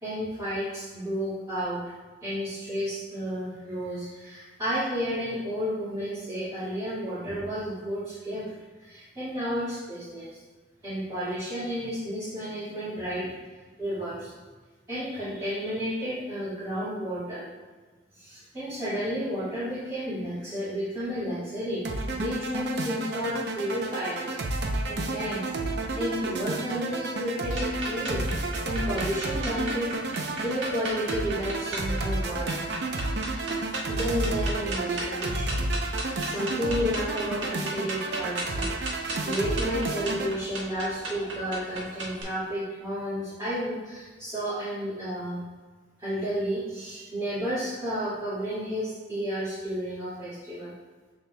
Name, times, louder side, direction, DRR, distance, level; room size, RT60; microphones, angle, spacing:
voice 1, 0.0-1.8 2.2-8.5 8.8-10.4 10.8-13.4 13.8-14.3 14.9-17.4 18.1-21.8 22.1-28.3 28.6-32.6 33.9-35.5 35.8-38.7 39.0-45.4 46.0-50.7, equal, 20° right, -13 dB, 2.0 m, -32 dB
sound 1, 21.8-40.3, right 2 dB, 65° right, 0.7 m, -31 dB
sound 2, 27.5-42.2, right 2 dB, 85° right, 1.5 m, -36 dB
7.0 x 6.2 x 2.3 m, 1.3 s
head